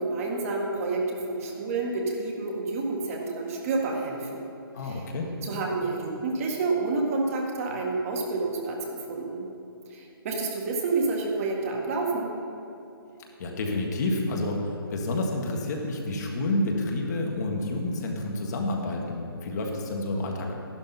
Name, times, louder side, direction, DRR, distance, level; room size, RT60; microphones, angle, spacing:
voice 1, 0.0-4.4 4.8-5.0 5.4-9.5 9.9-12.3, right 3 dB, 35° right, 0 dB, 1.7 m, -29 dB
voice 2, 4.7-5.4 13.4-20.5, left 2 dB, 45° left, 0 dB, 1.7 m, -29 dB
11.5 x 11.5 x 4.2 m, 2.8 s
figure-of-eight pair, 145°, 13 cm